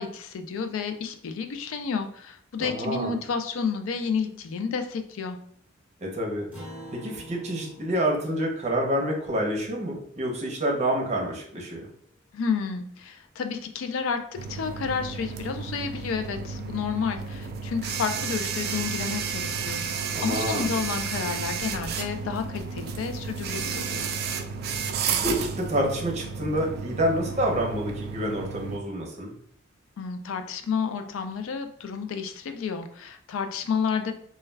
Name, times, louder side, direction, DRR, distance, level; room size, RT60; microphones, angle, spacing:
voice 1, 0.0-5.4 12.3-14.2 14.5-24.1 30.0-34.1, left 6 dB, 85° left, 7 dB, 0.4 m, -31 dB
voice 2, 2.6-3.1 6.0-6.5 6.9-11.9 20.1-20.7 25.2-29.3, right 1 dB, 35° right, -1 dB, 0.7 m, -28 dB
Acoustic guitar, 6.5-11.2, equal, 10° right, 0.8 m, -47 dB
sound 1, 14.3-28.8, right 5 dB, 50° right, 0.3 m, -32 dB
2.2 x 2.2 x 3.2 m, 0.64 s
head